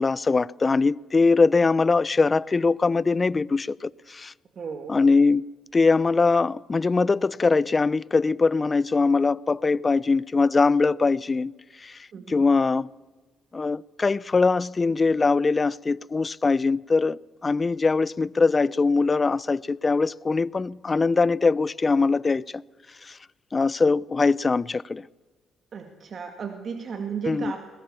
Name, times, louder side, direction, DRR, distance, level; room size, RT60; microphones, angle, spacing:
voice 1, 0.0-4.3 4.9-5.5 5.7-11.5 11.8-12.0 12.3-12.9 13.5-22.6 23.0-23.2 23.5-25.0 27.3-27.5, left 4 dB, 35° left, 0.6 m, -22 dB
voice 2, 4.6-5.0 12.1-12.5 25.7-27.6, right 6 dB, 55° right, 2.0 m, -34 dB
21.5 x 20.5 x 7.0 m
supercardioid pair, 65°, 0 cm